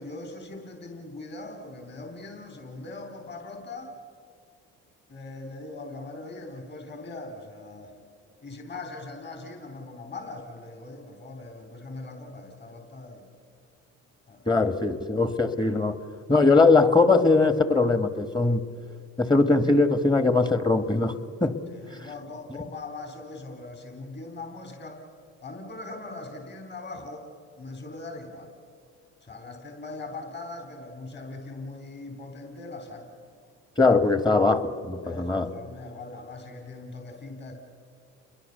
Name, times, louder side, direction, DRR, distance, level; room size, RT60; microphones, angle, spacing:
voice 1, 0.0-3.9 5.1-7.9 8.4-13.3 14.3-14.7 21.7-25.0 25.4-27.3 27.6-28.5 29.2-33.1 35.0-37.5, left 2 dB, 35° left, 5 dB, 3.8 m, -40 dB
voice 2, 14.5-16.0 16.3-18.6 19.2-21.1 21.4-21.6 33.8-35.5, left 3 dB, 15° left, 11 dB, 1.6 m, -21 dB
29.0 x 22.0 x 6.8 m, 2.2 s
supercardioid pair, 80°, 30 cm